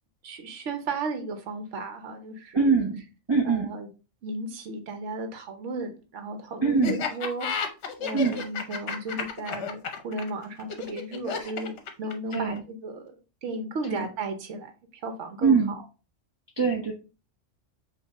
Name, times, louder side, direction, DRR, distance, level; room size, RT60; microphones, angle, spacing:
voice 1, 0.2-2.7 3.4-3.9 4.2-7.5 8.0-13.0 13.4-14.7 15.0-15.8, right 2 dB, 70° right, 6 dB, 1.1 m, -34 dB
voice 2, 2.5-3.0 3.3-3.7 6.6-7.1 8.1-8.4 12.3-12.6 13.9-14.1 15.4-15.7 16.6-16.9, right 5 dB, 30° right, 0 dB, 0.6 m, -23 dB
Laughter, 6.8-12.6, left 6 dB, 65° left, 1.0 m, -32 dB
5.1 x 2.7 x 3.6 m, 0.32 s
omnidirectional pair, 1.3 m